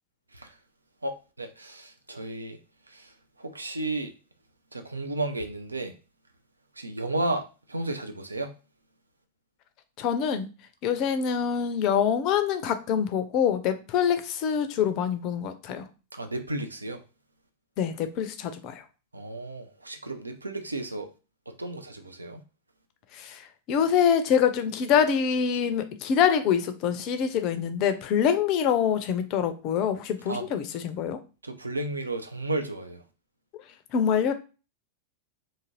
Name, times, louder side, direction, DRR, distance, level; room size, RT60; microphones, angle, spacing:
voice 1, 1.0-2.6 2.9-3.1 3.4-4.1 4.7-5.9 6.8-7.4 7.7-8.5 16.1-17.0 19.1-21.1 21.6-22.4 30.3-30.5 31.4-33.0, right 2 dB, 80° right, 0.4 m, -33 dB
voice 2, 10.0-10.5 10.8-15.9 17.8-18.8 23.1-31.2 33.9-34.3, left 8 dB, 40° left, 0.4 m, -25 dB
2.6 x 2.5 x 2.9 m
figure-of-eight pair, 90°, 0 cm